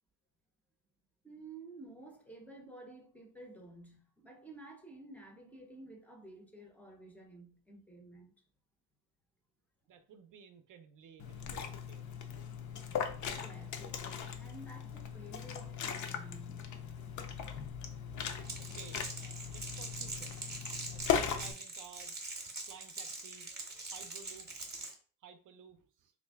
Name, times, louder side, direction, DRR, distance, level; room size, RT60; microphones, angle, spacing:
voice 1, 1.2-8.3 12.4-16.8, right 2 dB, 5° left, 0.5 m, -52 dB
voice 2, 9.9-12.0 18.6-20.4 20.9-22.2 22.6-23.5 23.8-24.5 25.2-26.1, right 7 dB, 55° right, 0.5 m, -55 dB
Liquid, 11.2-21.5, left 7 dB, 55° left, 0.5 m, -39 dB
Crackle, 18.4-24.9, right 3 dB, 30° right, 0.8 m, -43 dB
3.1 x 2.5 x 3.4 m
cardioid pair, 155°, 37 cm